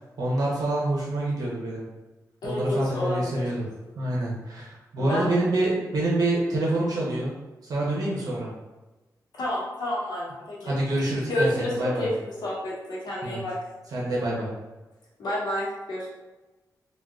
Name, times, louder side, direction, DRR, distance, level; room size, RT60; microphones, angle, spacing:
voice 1, 0.2-1.8 2.4-3.7 4.0-7.3 7.7-8.5 10.6-12.1 13.2-13.4 13.9-14.5, right 1 dB, 65° right, -5 dB, 0.7 m, -26 dB
voice 2, 2.4-3.4 5.0-5.3 9.3-10.7 11.3-13.6 15.2-16.1, left 1 dB, 85° left, -6 dB, 0.9 m, -29 dB
3.6 x 2.2 x 2.3 m, 1.1 s
wide cardioid pair, 180°, 7 cm